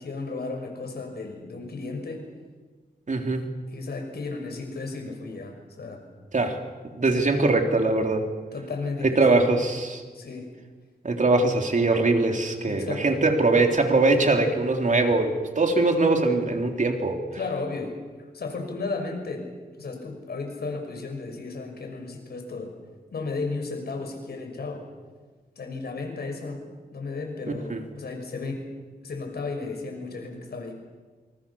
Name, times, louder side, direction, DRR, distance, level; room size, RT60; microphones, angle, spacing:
voice 1, 0.0-2.3 3.7-6.0 7.0-7.3 8.5-9.5 10.1-10.5 12.7-13.2 17.3-18.0 18.3-19.5 19.8-22.7 23.1-24.9 25.6-26.6 26.9-28.8 29.0-30.8, left 3 dB, 80° left, 4 dB, 6.1 m, -34 dB
voice 2, 3.1-3.4 6.3-6.6 6.9-8.3 9.0-10.0 11.0-17.2 27.7-27.8, right 3 dB, 50° right, 4 dB, 3.6 m, -22 dB
27.5 x 25.5 x 7.2 m, 1.4 s
wide cardioid pair, 80°, 16 cm